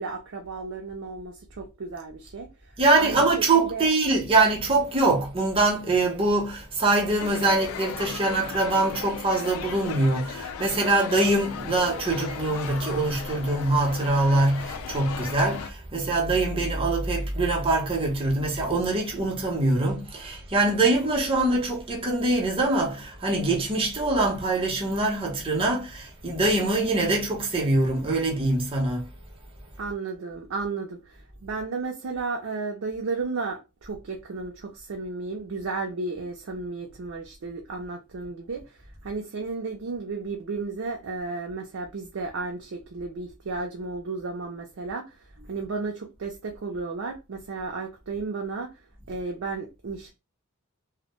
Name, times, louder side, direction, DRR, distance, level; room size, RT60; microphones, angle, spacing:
voice 1, 0.0-2.7 3.0-3.9 29.8-48.8 49.1-50.1, right 4 dB, 70° right, 0.4 m, -33 dB
voice 2, 2.8-29.1, right 2 dB, 25° right, 0.6 m, -23 dB
sound 1, 7.2-15.7, left 7 dB, 80° left, 0.3 m, -37 dB
2.1 x 2.1 x 2.9 m
head